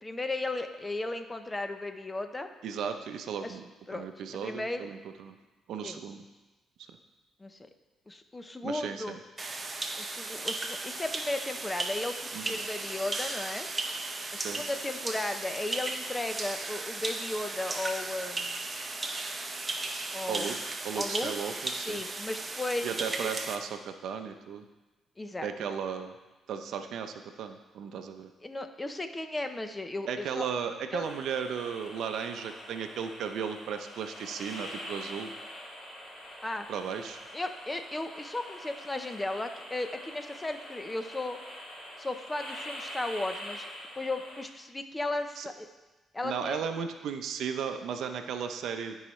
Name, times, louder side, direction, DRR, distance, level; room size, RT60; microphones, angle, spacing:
voice 1, 0.0-2.5 3.4-3.6 3.9-4.0 4.3-4.8 5.8-6.0 7.4-7.6 8.1-9.2 10.0-13.7 14.3-18.6 20.1-20.5 20.9-21.3 21.9-23.4 25.2-25.5 28.4-30.5 30.9-31.0 36.4-36.7 37.3-41.4 42.0-43.7 44.0-45.7 46.1-46.6, left 2 dB, 20° left, 8 dB, 0.6 m, -35 dB
voice 2, 2.6-3.6 3.9-5.4 5.7-6.2 8.6-9.2 12.3-12.6 14.3-14.6 20.3-20.6 20.8-22.0 22.8-24.6 25.4-26.1 26.5-28.3 30.1-35.3 36.7-37.2 45.4-45.5 46.2-49.0, right 7 dB, 75° right, 7 dB, 0.6 m, -35 dB
sound 1, 9.4-23.6, right 2 dB, 25° right, 0.7 m, -36 dB
sound 2, 31.0-44.4, equal, 55° left, 2.7 m, -44 dB
13.0 x 4.7 x 3.1 m, 1.1 s
cardioid pair, 90°, 0 cm